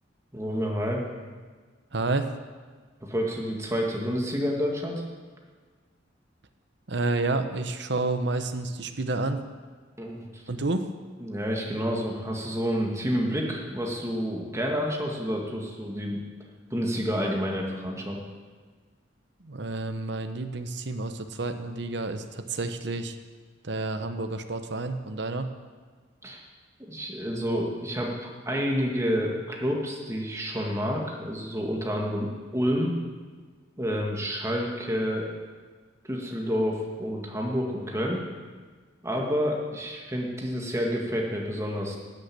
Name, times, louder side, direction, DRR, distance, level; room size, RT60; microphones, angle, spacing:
voice 1, 0.3-1.0 3.0-5.0 10.0-10.4 11.2-16.2 16.7-18.2 26.2-26.4 26.9-32.9 33.8-35.3 36.0-38.2 39.0-42.0, equal, 15° right, 0 dB, 2.0 m, -29 dB
voice 2, 1.9-2.3 6.9-9.4 10.5-10.9 19.4-23.2 23.6-25.5, right 2 dB, 65° right, 8 dB, 1.0 m, -30 dB
12.5 x 8.2 x 8.6 m, 1.5 s
head